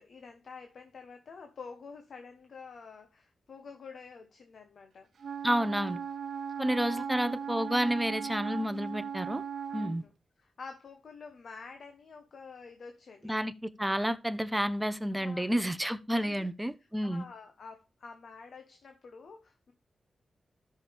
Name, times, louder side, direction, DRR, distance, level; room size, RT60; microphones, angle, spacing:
voice 1, 0.0-5.1 6.8-7.1 9.7-10.1 10.4-13.3 15.1-15.7 16.1-16.5 17.0-19.7, left 5 dB, 70° left, 1.2 m, -48 dB
Wind instrument woodwind instrument, 5.2-10.0, right 7 dB, 75° right, 0.6 m, -38 dB
voice 2, 5.4-6.0 6.6-9.4 9.7-10.0 13.2-17.2, equal, 5° right, 0.9 m, -30 dB
13.0 x 6.3 x 3.5 m
cardioid pair, 60°, 0 cm